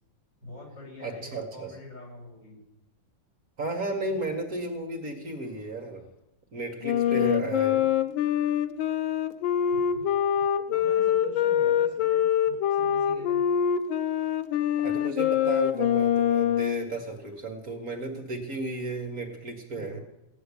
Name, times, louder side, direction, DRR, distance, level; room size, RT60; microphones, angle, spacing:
voice 1, 0.4-2.6 6.9-7.4 9.7-10.4 10.7-13.5 19.8-20.0, left 2 dB, 65° left, -3 dB, 6.4 m, -46 dB
voice 2, 1.0-1.7 3.6-6.1 6.5-7.9 14.8-20.0, right 3 dB, 50° right, 3 dB, 2.2 m, -34 dB
Wind instrument woodwind instrument, 6.8-16.9, left 9 dB, 85° left, 1.5 m, -24 dB
17.0 x 7.7 x 10.0 m, 0.91 s
omnidirectional pair, 2.1 m